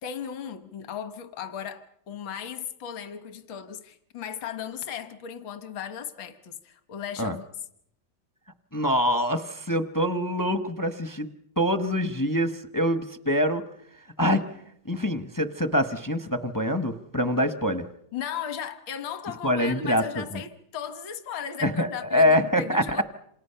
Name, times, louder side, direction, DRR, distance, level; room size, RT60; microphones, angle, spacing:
voice 1, 0.0-7.5 18.1-23.0, left 8 dB, 80° left, 2.0 m, -36 dB
voice 2, 8.7-11.3 11.6-13.6 14.2-14.4 14.9-17.9 19.4-20.2 21.6-22.8, equal, 20° left, 0.5 m, -25 dB
27.5 x 27.5 x 5.7 m
omnidirectional pair, 2.1 m